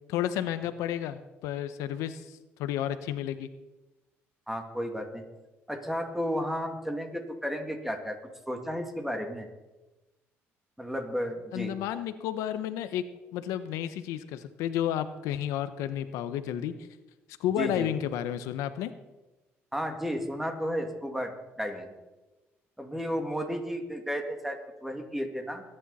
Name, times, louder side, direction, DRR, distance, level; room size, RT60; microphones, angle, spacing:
voice 1, 0.1-3.5 11.5-13.0 13.3-16.7 17.4-18.9, left 11 dB, 90° left, 11 dB, 0.9 m, -31 dB
voice 2, 4.5-5.2 5.7-8.2 8.5-9.5 10.8-11.7 17.6-17.9 19.7-21.3 21.6-21.9 22.8-25.6, equal, 5° right, 4 dB, 2.4 m, -33 dB
22.5 x 10.0 x 4.2 m, 1.1 s
cardioid pair, 85°, 5 cm